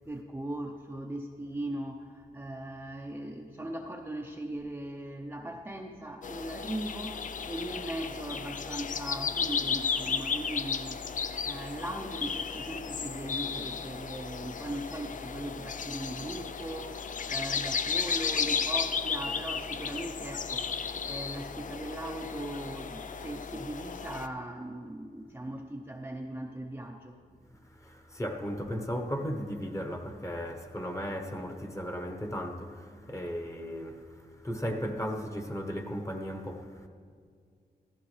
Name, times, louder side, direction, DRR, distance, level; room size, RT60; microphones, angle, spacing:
voice 1, 0.1-11.0 11.4-20.8 21.0-27.1, right 1 dB, 15° right, 0.7 m, -39 dB
sound 1, 6.2-24.3, left 6 dB, 55° left, 0.4 m, -34 dB
voice 2, 27.6-36.9, equal, 20° left, 1.2 m, -36 dB
15.5 x 14.0 x 3.3 m
wide cardioid pair, 105°, 16 cm